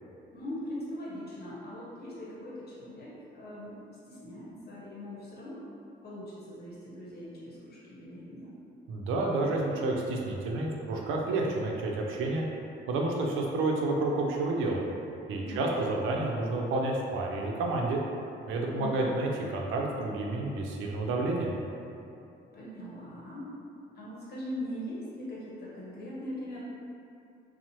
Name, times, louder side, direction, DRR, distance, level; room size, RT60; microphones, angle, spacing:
voice 1, 0.3-5.6 6.0-8.5 15.4-15.8 18.7-19.1 22.5-23.6 23.9-26.6, equal, 50° left, -7 dB, 0.9 m, -41 dB
voice 2, 8.9-12.5 12.9-14.8 15.3-18.0 18.5-21.6, right 2 dB, 90° right, -1 dB, 0.4 m, -30 dB
2.9 x 2.0 x 2.8 m, 2.6 s
cardioid pair, 90°, 20 cm